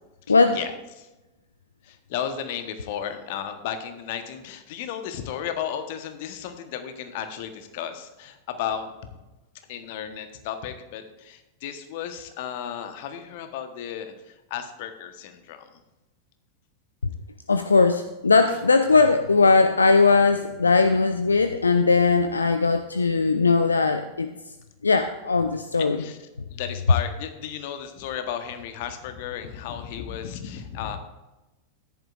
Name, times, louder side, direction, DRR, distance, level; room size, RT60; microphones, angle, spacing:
voice 1, 0.3-0.6 17.0-17.1 17.5-24.3 24.8-26.0, left 4 dB, 75° left, 9 dB, 0.5 m, -19 dB
voice 2, 1.8-8.9 9.7-15.7 26.0-26.2 26.5-31.0, left 9 dB, 50° left, 8 dB, 1.2 m, -34 dB
14.0 x 10.5 x 2.5 m, 1.0 s
figure-of-eight pair, 90°, 0 cm